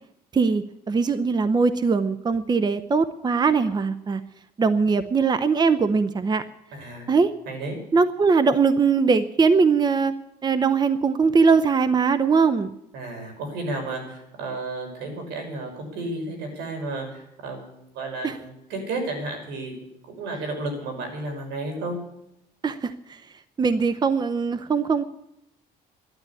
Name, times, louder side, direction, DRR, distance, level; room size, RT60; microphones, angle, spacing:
voice 1, 0.3-4.2 4.6-6.4 7.1-7.3 7.9-10.2 10.4-12.7 18.2-18.4 22.6-23.2 23.6-25.0, right 5 dB, 25° right, 12 dB, 0.8 m, -21 dB
voice 2, 6.7-7.1 7.5-7.8 12.9-17.7 17.9-19.9 20.2-22.0, right 2 dB, 85° right, 3 dB, 6.1 m, -32 dB
13.0 x 12.0 x 8.5 m, 0.81 s
cardioid pair, 110°, 17 cm